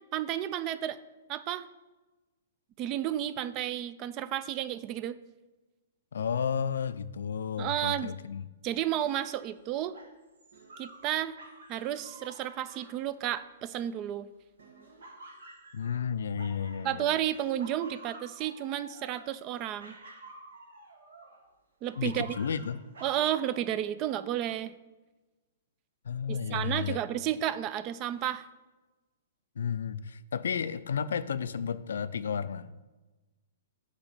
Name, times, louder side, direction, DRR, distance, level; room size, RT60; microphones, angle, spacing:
voice 1, 0.1-1.0 1.3-1.7 2.8-5.2 7.6-8.1 8.6-9.9 10.8-11.4 11.7-14.3 16.8-20.0 21.8-22.4 23.0-24.7 26.3-28.5, right 11 dB, 35° right, 15 dB, 0.3 m, -32 dB
voice 2, 6.1-8.5 15.7-17.1 22.0-22.8 26.0-27.0 29.6-32.7, left 7 dB, 80° left, 14 dB, 0.3 m, -32 dB
sound 1, 9.0-14.0 14.6-17.1 17.3-21.5 21.8-23.7, right 2 dB, 80° right, 1.2 m, -51 dB
8.2 x 2.9 x 5.9 m, 1.2 s
hypercardioid pair, 135°, 0 cm